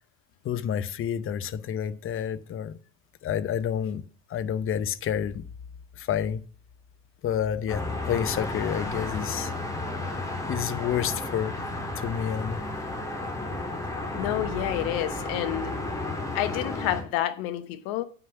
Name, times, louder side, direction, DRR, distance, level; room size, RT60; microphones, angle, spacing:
voice 1, 0.4-2.8 3.2-5.5 6.0-6.4 7.2-9.5 10.4-12.6, left 9 dB, 30° left, 0.8 m, -29 dB
sound 1, 7.7-17.0, left 2 dB, 10° left, 3.3 m, -33 dB
voice 2, 14.2-15.7 16.3-18.0, left 13 dB, 55° left, 1.1 m, -29 dB
9.4 x 5.9 x 6.9 m
hypercardioid pair, 90°, 41 cm